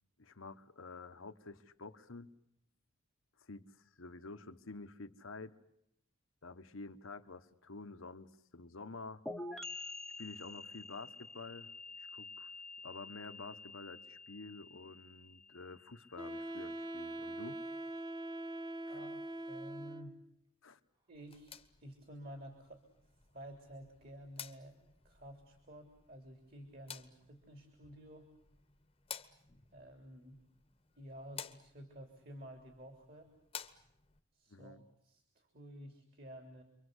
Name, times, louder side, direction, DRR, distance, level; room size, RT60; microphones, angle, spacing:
voice 1, 0.2-2.3 3.4-3.7 4.0-5.5 6.4-9.2 10.2-11.7 12.0-12.5 12.8-17.6 20.6-20.8 34.5-34.8, left 3 dB, 75° left, 9 dB, 1.3 m, -49 dB
sound 1, 9.3-16.8, left 2 dB, ahead, 1.1 m, -48 dB
Wind instrument woodwind instrument, 16.2-20.3, right 1 dB, 20° right, 1.1 m, -43 dB
voice 2, 18.9-20.2 21.1-22.8 23.3-24.8 25.0-28.3 29.7-30.4 31.0-33.3 34.3-36.6, equal, 45° right, 5 dB, 3.4 m, -52 dB
sound 2, 21.1-34.2, left 8 dB, 25° left, 1.2 m, -54 dB
29.5 x 24.0 x 8.2 m, 0.74 s
head